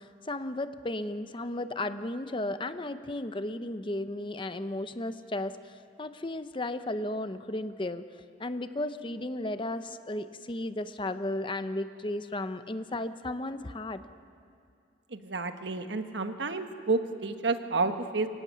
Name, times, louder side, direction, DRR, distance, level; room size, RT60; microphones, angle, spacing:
voice 1, 0.0-8.0 8.4-14.0, left 1 dB, 30° left, 11 dB, 0.7 m, -34 dB
voice 2, 15.1-18.3, right 3 dB, 75° right, 8 dB, 1.2 m, -30 dB
24.0 x 16.0 x 9.3 m, 2.4 s
head